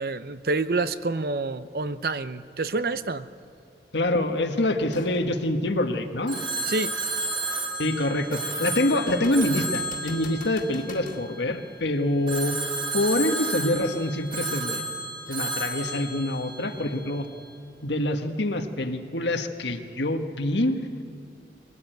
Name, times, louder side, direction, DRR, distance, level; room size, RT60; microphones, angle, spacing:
voice 1, 0.0-3.3 6.7-6.9, right 3 dB, 55° right, 13 dB, 0.7 m, -28 dB
voice 2, 3.9-6.4 7.8-12.6 12.9-14.8 15.3-17.3 17.8-20.8, left 1 dB, 80° left, 6 dB, 1.6 m, -26 dB
sound 1, 4.9-5.2 5.8-5.9 9.1-11.3 14.9-15.0, left 3 dB, 45° left, 2.1 m, -43 dB
Telephone, 6.3-11.5 12.3-17.1, right 2 dB, 25° right, 2.7 m, -32 dB
22.0 x 18.5 x 9.2 m, 2.4 s
head